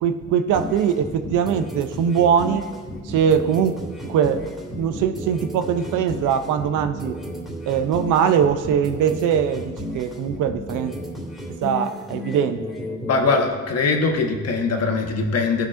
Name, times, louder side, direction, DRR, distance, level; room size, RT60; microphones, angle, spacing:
voice 1, 0.0-2.6 3.0-3.7 4.0-4.4 4.7-7.2 7.7-10.9 11.6-12.6, right 8 dB, 85° right, 10 dB, 0.6 m, -21 dB
sound 1, 0.5-13.4, left 1 dB, ahead, 2.3 m, -33 dB
voice 2, 13.0-15.7, left 4 dB, 55° left, 2 dB, 1.3 m, -21 dB
16.5 x 5.9 x 2.5 m, 1.4 s
cardioid pair, 90°, 30 cm